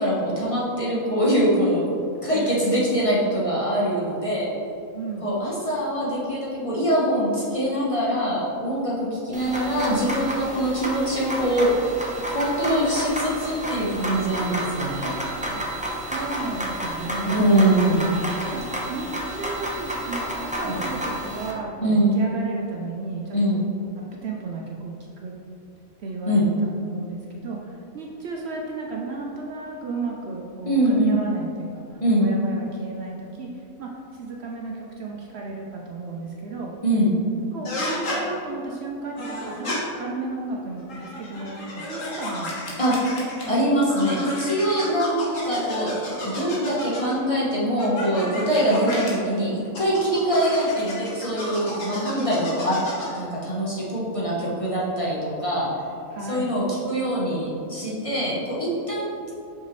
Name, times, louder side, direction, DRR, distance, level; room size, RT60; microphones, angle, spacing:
voice 1, 0.0-1.8 2.2-4.5 5.2-11.7 12.3-15.2 17.3-18.0 20.6-20.8 21.8-22.2 23.3-23.6 26.3-26.5 30.6-31.2 32.0-32.3 36.8-37.1 42.8-43.2 43.5-52.8 53.2-55.7 56.3-59.3, right 1 dB, 25° left, -6 dB, 1.0 m, -23 dB
voice 2, 4.9-5.3 9.3-9.7 15.5-15.7 16.0-17.5 18.5-18.6 18.9-23.7 24.0-25.4 26.0-36.7 37.5-39.7 40.0-42.8 56.1-56.5, right 3 dB, 60° right, -1 dB, 0.8 m, -34 dB
sound 1, 9.3-21.5, right 1 dB, 10° right, 0.4 m, -31 dB
sound 2, 37.6-38.2 39.2-39.8 40.8-43.6 43.9-47.2 47.8-49.1 49.7-53.2, left 1 dB, 70° left, 1.7 m, -32 dB
5.9 x 5.4 x 3.1 m, 2.7 s
omnidirectional pair, 1.4 m